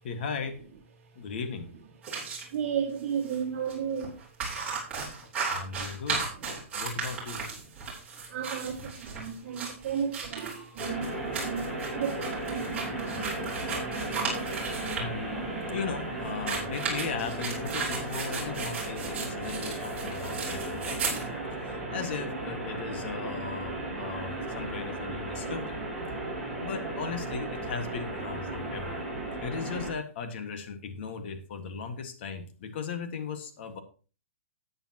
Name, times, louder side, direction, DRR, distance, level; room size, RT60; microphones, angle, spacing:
voice 1, 0.0-0.6 1.2-1.7 5.5-6.3 6.7-7.4 15.0-15.4 15.7-21.0 21.6-25.8 26.6-29.0 29.4-33.8, left 5 dB, 50° left, 1.8 m, -37 dB
sound 1, 2.0-2.4 3.2-3.4 3.7-3.8 4.0-15.1 16.3-21.3, right 5 dB, 15° right, 3.8 m, -35 dB
voice 2, 2.5-4.1 6.3-6.4 8.3-15.0 15.4-15.6 19.2-19.3, right 7 dB, 40° right, 2.3 m, -35 dB
sound 2, 10.8-29.9, right 2 dB, 5° left, 5.3 m, -35 dB
13.5 x 8.9 x 3.0 m
hypercardioid pair, 155°, 7 cm